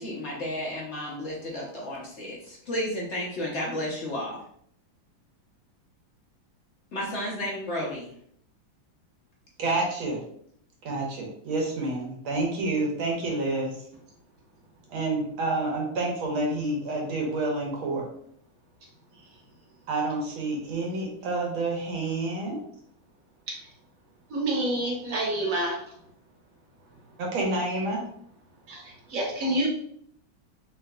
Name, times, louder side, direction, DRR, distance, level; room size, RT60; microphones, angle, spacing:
voice 1, 0.0-4.4 6.9-8.1, left 1 dB, 60° left, -4 dB, 0.7 m, -32 dB
voice 2, 9.6-10.2 10.8-13.8 14.9-18.1 19.9-22.6 27.2-28.0, right 2 dB, 85° right, 0 dB, 1.8 m, -28 dB
voice 3, 24.3-25.7 28.7-29.7, right 1 dB, 50° right, -2 dB, 1.3 m, -28 dB
3.9 x 3.6 x 2.2 m, 0.66 s
omnidirectional pair, 2.2 m